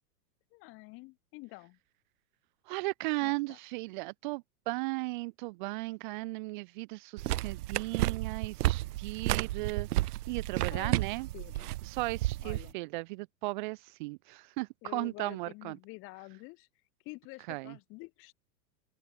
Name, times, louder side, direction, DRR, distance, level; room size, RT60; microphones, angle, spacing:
voice 1, 0.5-1.8 3.2-3.6 10.7-11.7 12.4-12.7 14.8-16.7 17.0-18.3, left 24 dB, 25° left, 1.4 m, -48 dB
voice 2, 2.7-11.3 11.8-15.8 17.5-17.8, right 23 dB, 30° right, 0.8 m, -36 dB
sound 1, 7.2-12.7, right 16 dB, 75° right, 0.7 m, -32 dB
open air
supercardioid pair, 165°, 47 cm